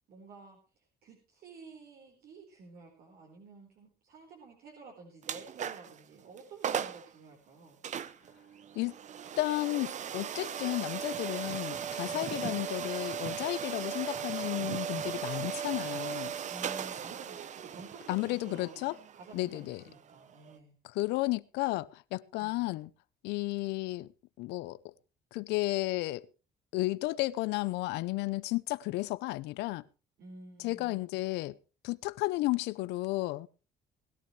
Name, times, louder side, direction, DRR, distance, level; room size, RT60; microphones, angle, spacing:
voice 1, 0.1-7.8 12.0-12.4 16.5-20.8 22.4-22.7 30.2-31.0, right 3 dB, 65° right, 4.4 m, -51 dB
sound 1, 5.2-6.0 6.4-6.5 6.6-7.1 7.8-20.6, right 8 dB, 45° right, 0.9 m, -38 dB
voice 2, 9.4-16.3 18.1-19.0 19.3-19.8 20.8-22.9 23.2-24.1 24.4-24.8 25.3-26.3 26.7-29.8 30.6-31.6 31.8-33.5, left 19 dB, 90° left, 0.7 m, -33 dB
20.0 x 13.0 x 3.2 m
cardioid pair, 110°, 17 cm